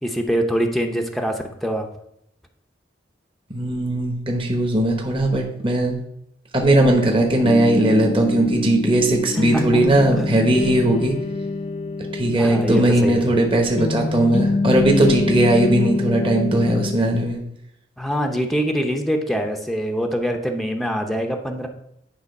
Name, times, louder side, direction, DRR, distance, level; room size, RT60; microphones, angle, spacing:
voice 1, 0.0-1.9 9.5-9.6 10.2-10.3 12.4-13.3 18.0-21.7, equal, ahead, 4 dB, 0.7 m, -24 dB
voice 2, 3.5-6.0 6.5-11.2 12.1-17.4, right 1 dB, 30° right, 1 dB, 1.1 m, -18 dB
sound 1, 7.4-17.0, left 3 dB, 35° left, 0.3 m, -25 dB
9.8 x 3.7 x 5.3 m, 0.77 s
head